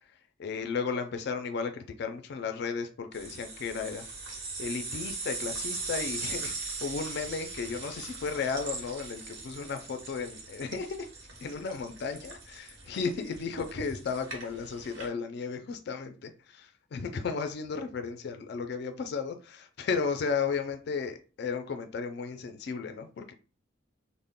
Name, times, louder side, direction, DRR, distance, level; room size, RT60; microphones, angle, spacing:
voice 1, 0.4-4.1 4.6-11.1 11.4-23.3, left 5 dB, 60° left, 0.3 m, -34 dB
sound 1, 3.1-15.1, right 3 dB, 70° right, 0.9 m, -40 dB
2.2 x 2.0 x 3.5 m
head